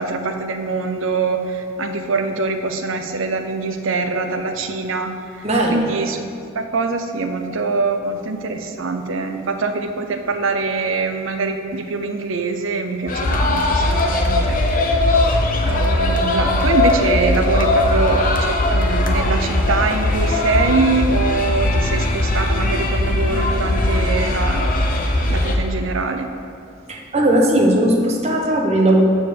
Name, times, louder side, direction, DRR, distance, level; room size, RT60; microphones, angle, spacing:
voice 1, 0.0-5.1 5.4-6.2 6.5-14.6 15.6-24.9 25.3-26.3, right 3 dB, 70° right, 6 dB, 0.6 m, -23 dB
voice 2, 5.4-5.9 26.9-29.0, right 1 dB, 35° right, -1 dB, 1.0 m, -17 dB
sound 1, 13.1-25.5, left 1 dB, 45° left, 0.8 m, -19 dB
7.3 x 4.6 x 6.6 m, 2.4 s
head